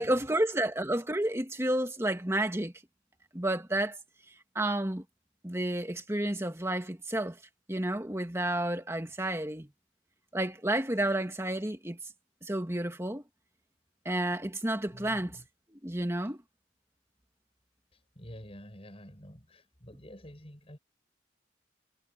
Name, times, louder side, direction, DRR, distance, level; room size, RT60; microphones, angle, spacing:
voice 1, 0.0-2.7 3.3-4.0 4.6-5.0 5.4-7.4 7.7-9.7 10.3-12.0 12.4-13.2 14.1-15.3 15.7-16.4, right 1 dB, 15° right, 2.1 m, -30 dB
voice 2, 14.9-15.5 17.9-20.8, equal, 30° left, 7.9 m, -49 dB
head